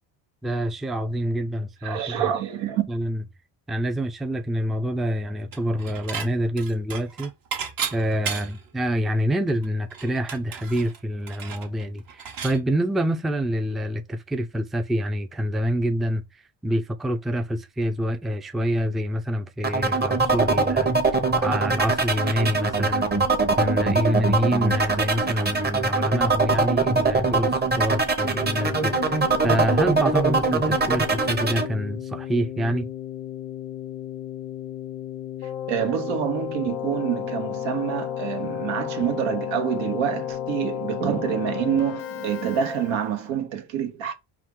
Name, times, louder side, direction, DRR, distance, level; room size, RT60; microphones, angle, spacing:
voice 1, 0.4-2.2 2.9-3.2 3.7-7.3 7.9-20.9 21.4-23.1 23.6-32.9, equal, ahead, 0.4 m, -26 dB
voice 2, 1.8-2.8 35.7-44.1, right 9 dB, 80° right, 1.1 m, -27 dB
Dishes pots and pans / Chink clink, 5.5-6.3 6.6-8.7 9.1-9.2 9.5-12.6, right 7 dB, 50° right, 1.0 m, -34 dB
sound 1, 19.6-31.7, right 3 dB, 20° right, 0.9 m, -22 dB
Keyboard (musical), 28.2-43.3, left 10 dB, 85° left, 0.7 m, -33 dB
4.6 x 2.4 x 3.7 m
supercardioid pair, 75°, 45 cm